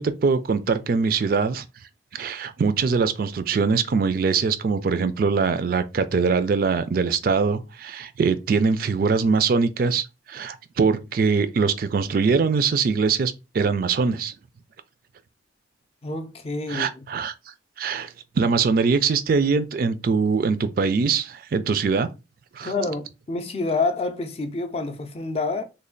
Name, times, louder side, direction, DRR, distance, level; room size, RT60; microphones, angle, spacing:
voice 1, 0.0-1.6 2.1-14.3 16.7-17.3 17.8-22.1 22.6-22.7, right 5 dB, 50° right, 0.3 m, -22 dB
voice 2, 16.0-17.1 22.6-25.6, left 3 dB, 30° left, 0.4 m, -28 dB
3.2 x 2.2 x 3.8 m
head